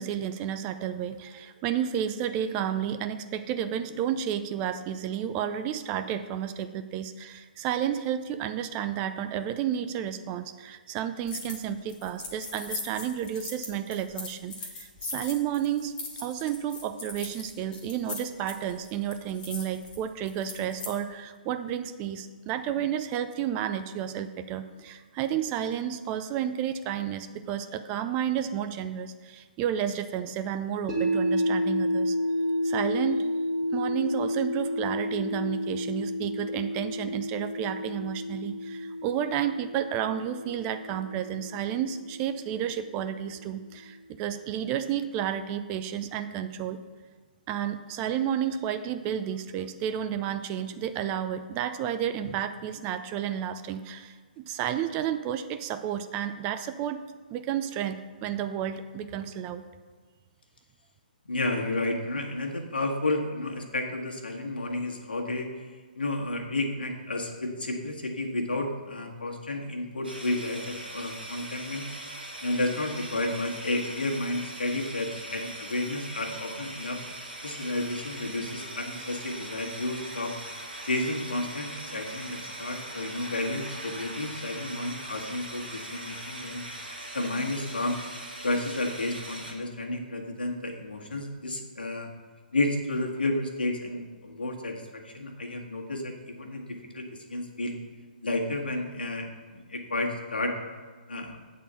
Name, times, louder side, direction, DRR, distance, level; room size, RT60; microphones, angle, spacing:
voice 1, 0.0-15.9 16.2-32.2 32.6-33.3 33.7-46.8 47.5-57.0 57.3-59.6, right 9 dB, 25° right, 10 dB, 0.4 m, -31 dB
sound 1, 11.3-11.6 11.9-20.9, left 3 dB, 15° left, 1.5 m, -40 dB
sound 2, 30.9-43.0, equal, 10° right, 1.4 m, -31 dB
voice 2, 61.3-71.9 72.4-77.0 77.4-80.3 80.8-86.6 87.1-88.0 88.4-92.1 92.5-97.7 98.2-100.5 101.1-101.4, left 2 dB, 75° left, 1 dB, 1.5 m, -31 dB
sound 3, 70.0-89.5, right 1 dB, 80° right, 1.9 m, -41 dB
8.4 x 4.2 x 6.8 m, 1.5 s
figure-of-eight pair, 130°, 5 cm